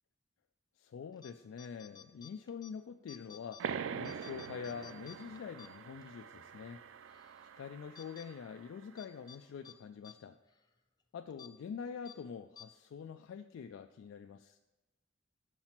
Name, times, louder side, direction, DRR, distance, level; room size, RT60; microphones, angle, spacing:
voice 1, 0.8-6.8 7.1-10.4 11.1-14.6, left 6 dB, 80° left, 6 dB, 0.3 m, -46 dB
sound 1, 1.1-1.3 1.6-2.7 3.1-3.6 4.0-6.1 6.5-6.6 7.1-7.5 8.0-8.3 9.0-9.4 9.6-9.8 10.0-10.2 10.5-10.7 11.3-11.5 12.1-12.2 12.6-12.7, left 8 dB, 20° left, 0.5 m, -54 dB
sound 2, 3.6-8.8, right 7 dB, 70° right, 0.3 m, -44 dB
6.5 x 4.4 x 5.8 m, 1.1 s
head